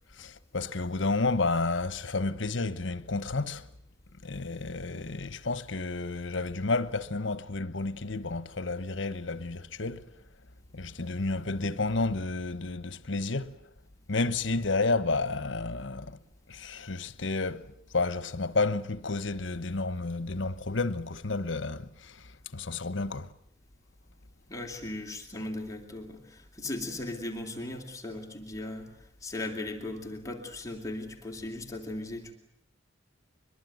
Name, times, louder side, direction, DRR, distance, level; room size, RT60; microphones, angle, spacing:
voice 1, 0.2-3.7 4.2-10.0 10.7-13.6 14.1-16.2 16.5-23.3, left 3 dB, 75° left, 1.2 m, -31 dB
voice 2, 24.5-32.3, left 2 dB, 15° left, 2.8 m, -38 dB
23.5 x 22.0 x 9.4 m
head